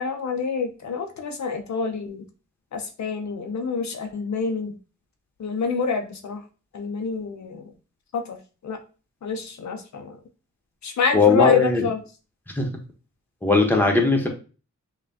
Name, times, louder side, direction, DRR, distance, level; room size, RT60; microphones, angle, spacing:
voice 1, 0.0-2.3 2.7-4.7 5.4-6.4 6.7-7.7 8.1-8.4 8.6-8.8 9.2-10.2 10.8-12.0, left 5 dB, 65° left, 5 dB, 0.5 m, -27 dB
voice 2, 11.1-11.9 12.6-12.7 13.4-14.3, left 3 dB, 5° left, 1 dB, 0.9 m, -18 dB
5.5 x 2.2 x 2.6 m, 0.35 s
wide cardioid pair, 95°, 30 cm